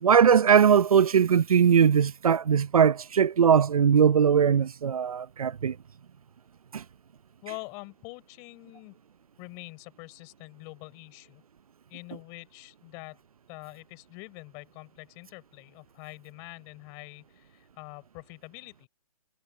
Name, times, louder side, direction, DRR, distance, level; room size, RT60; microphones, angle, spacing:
voice 1, 0.0-5.7 6.7-6.8, right 7 dB, 70° right, 0.6 m, -20 dB
voice 2, 7.4-9.0 9.4-11.4 11.9-13.2 13.5-18.9, left 30 dB, 15° left, 6.5 m, -45 dB
hypercardioid pair, 170°, 19 cm